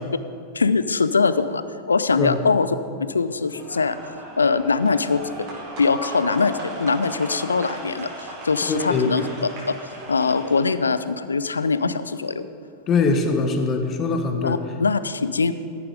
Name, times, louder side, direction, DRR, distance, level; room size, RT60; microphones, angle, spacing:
voice 1, 0.5-4.0 4.4-5.5 5.8-9.8 10.1-12.5 14.4-15.5, left 4 dB, 75° left, 13 dB, 0.5 m, -22 dB
sound 1, 3.5-10.9, right 1 dB, 40° right, 3.4 m, -36 dB
voice 2, 8.7-9.1 12.9-14.6, left 4 dB, 30° left, 6 dB, 1.4 m, -22 dB
14.5 x 10.5 x 5.0 m, 2.5 s
figure-of-eight pair, 90°, 0 cm